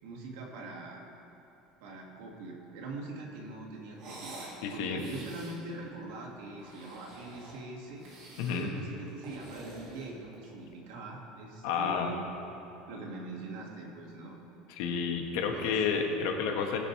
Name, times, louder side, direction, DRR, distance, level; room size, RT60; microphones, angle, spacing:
voice 1, 0.0-1.0 1.8-8.0 8.5-12.2 12.9-14.4 15.4-15.8, right 2 dB, 70° right, -1 dB, 2.4 m, -42 dB
sound 1, 3.9-4.6 4.9-5.6 6.5-7.6 8.0-8.7 9.1-10.6, right 2 dB, 45° right, 3.1 m, -48 dB
voice 2, 4.6-5.0 8.4-8.7 11.6-12.1 14.8-16.8, left 6 dB, 65° left, 3 dB, 1.5 m, -30 dB
21.0 x 8.2 x 3.4 m, 2.9 s
cardioid pair, 170°, 0 cm